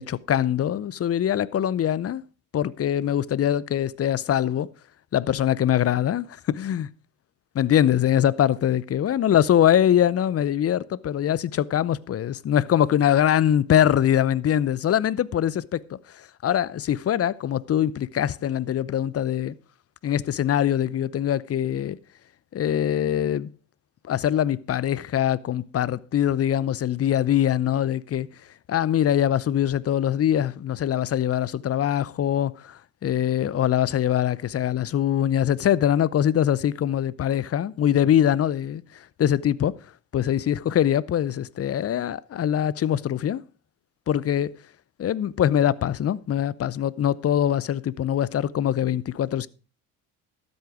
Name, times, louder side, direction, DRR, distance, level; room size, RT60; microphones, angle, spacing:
voice 1, 0.0-2.2 2.5-4.7 5.1-6.9 7.5-19.5 20.0-22.0 22.5-23.5 24.0-28.3 28.7-39.7 40.1-43.4 44.1-44.5 45.0-49.5, left 10 dB, 35° left, 0.7 m, -23 dB
12.5 x 8.0 x 4.9 m
hypercardioid pair, 70°, 43 cm